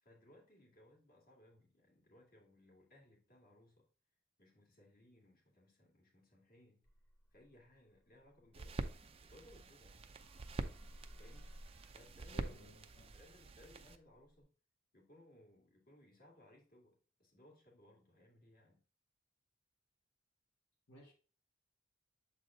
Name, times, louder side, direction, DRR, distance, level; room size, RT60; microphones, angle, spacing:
voice 1, 0.0-3.9 4.4-6.9 7.3-8.9 9.2-10.2 11.2-11.6 11.9-12.5 13.1-14.5 14.9-18.8, left 1 dB, 45° left, -1 dB, 2.1 m, -64 dB
sound 1, 6.8-9.9 10.2-14.4, equal, 15° left, 1.3 m, -60 dB
sound 2, 8.5-14.0, right 2 dB, 30° right, 0.5 m, -46 dB
voice 2, 12.3-13.1 20.9-21.1, right 1 dB, 70° left, -1 dB, 1.2 m, -57 dB
7.6 x 4.0 x 3.6 m, 0.38 s
head